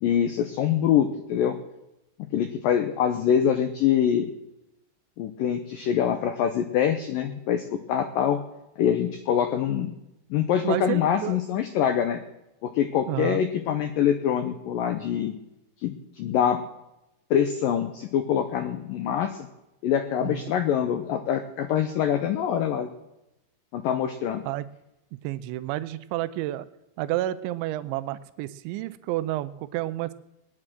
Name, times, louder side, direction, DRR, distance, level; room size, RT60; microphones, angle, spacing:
voice 1, 0.0-1.6 2.3-4.3 5.2-8.4 8.8-9.9 10.3-12.2 12.6-15.3 15.8-16.6 17.3-19.5 19.8-22.9 23.7-24.4, left 9 dB, 80° left, 8 dB, 2.0 m, -24 dB
voice 2, 10.6-11.4 13.1-13.4 20.2-20.5 24.5-24.7 25.2-26.7 27.0-30.1, right 15 dB, 85° right, 14 dB, 3.0 m, -30 dB
19.5 x 10.0 x 6.1 m, 0.89 s
omnidirectional pair, 5.2 m